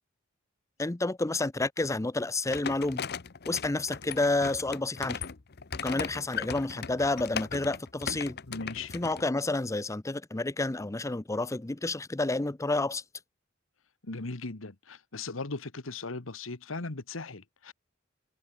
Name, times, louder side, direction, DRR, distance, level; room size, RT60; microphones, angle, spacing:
voice 1, 0.8-3.0 3.5-5.2 5.8-8.4 8.9-13.0, left 2 dB, 15° left, 0.6 m, -30 dB
sound 1, 2.5-9.2, left 6 dB, 55° left, 0.9 m, -38 dB
voice 2, 8.5-8.9 14.0-17.7, left 3 dB, 90° left, 1.6 m, -38 dB
head